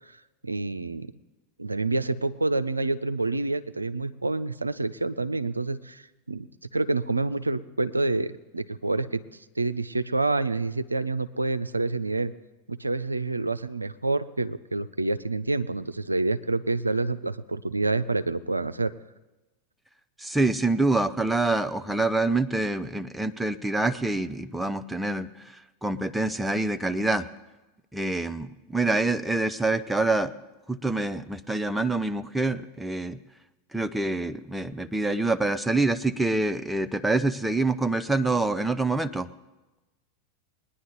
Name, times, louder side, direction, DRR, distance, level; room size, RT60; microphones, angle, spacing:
voice 1, 0.4-1.1 1.6-6.0 6.3-6.5 6.7-9.2 9.6-12.3 12.7-18.9, right 2 dB, 90° right, 13 dB, 0.4 m, -27 dB
voice 2, 20.2-27.3 27.9-30.3 30.7-33.2 33.7-39.3, right 2 dB, 5° right, 11 dB, 0.6 m, -26 dB
21.0 x 9.9 x 4.0 m, 1.1 s
figure-of-eight pair, 85°, 0 cm